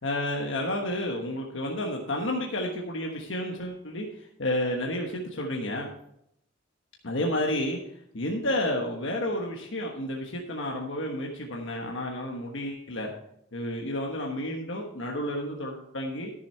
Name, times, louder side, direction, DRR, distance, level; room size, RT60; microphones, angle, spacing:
voice 1, 0.0-5.9 7.0-7.8 8.1-13.1 13.5-16.3, left 1 dB, 75° left, 0 dB, 1.3 m, -31 dB
13.5 x 7.0 x 4.5 m, 0.76 s
head